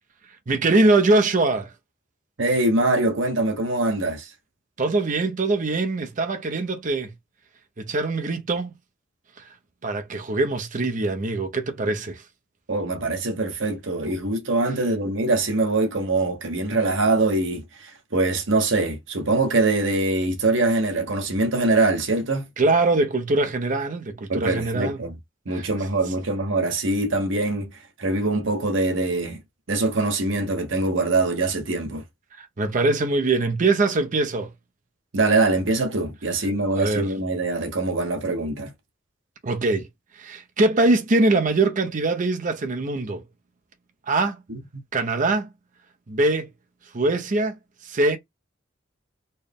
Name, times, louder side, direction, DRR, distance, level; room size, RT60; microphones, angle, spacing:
voice 1, 0.5-1.7 4.8-7.1 7.8-8.7 9.8-12.2 22.6-25.0 25.5-25.7 32.4-34.5 36.7-37.1 39.4-39.9 40.2-43.2 44.1-44.4 44.9-45.5 46.1-46.5 46.9-47.6 47.8-48.2, right 2 dB, 40° right, 0.6 m, -22 dB
voice 2, 2.4-4.3 12.7-22.5 24.3-25.1 25.5-27.7 28.0-29.4 29.7-32.0 35.1-38.7 44.5-44.6, right 2 dB, 75° right, 1.0 m, -23 dB
4.3 x 2.2 x 3.4 m
head